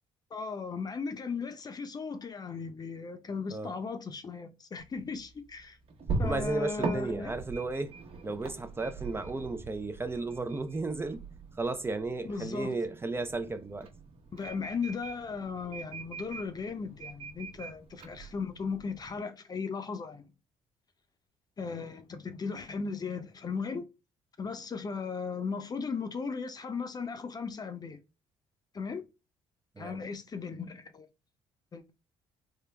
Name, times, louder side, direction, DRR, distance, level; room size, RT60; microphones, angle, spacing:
voice 1, 0.3-5.8 6.2-7.3 12.2-12.8 14.3-20.3 21.6-23.8 24.4-28.0 28.7-29.0 29.8-31.1 31.7-31.9, left 5 dB, 35° left, 0.7 m, -37 dB
sound 1, 4.8-19.2, right 3 dB, 50° right, 1.0 m, -41 dB
voice 2, 6.2-7.9 8.2-11.3 11.6-13.9 29.8-30.0, right 3 dB, 20° right, 0.5 m, -34 dB
3.7 x 2.1 x 3.3 m
supercardioid pair, 80°, 12 cm